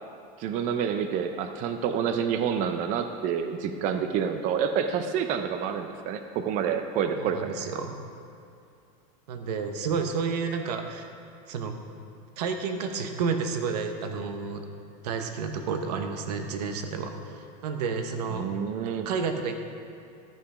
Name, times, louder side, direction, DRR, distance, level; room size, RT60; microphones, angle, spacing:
voice 1, 0.4-7.5 18.3-19.1, right 7 dB, 40° right, 7 dB, 0.5 m, -28 dB
voice 2, 7.2-8.0 9.3-11.1 11.5-11.8 12.4-14.7 15.0-18.5 19.0-19.7, right 5 dB, 90° right, 6 dB, 1.1 m, -31 dB
13.5 x 5.7 x 4.9 m, 2.5 s
supercardioid pair, 150°, 20 cm